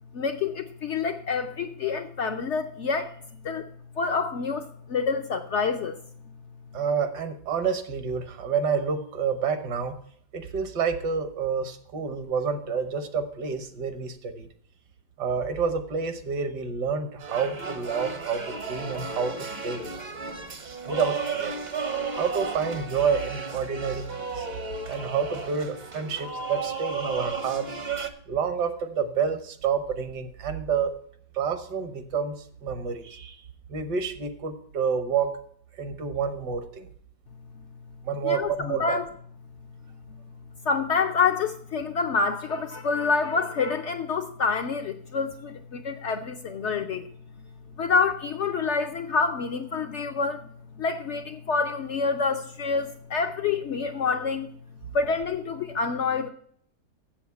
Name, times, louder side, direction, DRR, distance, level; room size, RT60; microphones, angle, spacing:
voice 1, 0.1-3.1 3.4-3.7 4.0-6.0 38.2-39.0 40.6-47.1 47.8-50.5 50.8-54.5 54.9-56.3, left 5 dB, 70° left, 0.6 m, -27 dB
voice 2, 6.7-9.9 10.3-14.5 15.2-19.4 19.6-19.9 20.9-21.6 22.1-24.0 24.3-24.5 24.9-27.7 28.3-30.9 31.3-32.3 32.6-33.4 33.7-35.4 35.8-36.9 38.0-39.0, right 6 dB, 75° right, 1.6 m, -28 dB
sound 1, 17.2-28.1, right 5 dB, 40° right, 0.6 m, -34 dB
7.7 x 7.1 x 8.2 m
omnidirectional pair, 1.8 m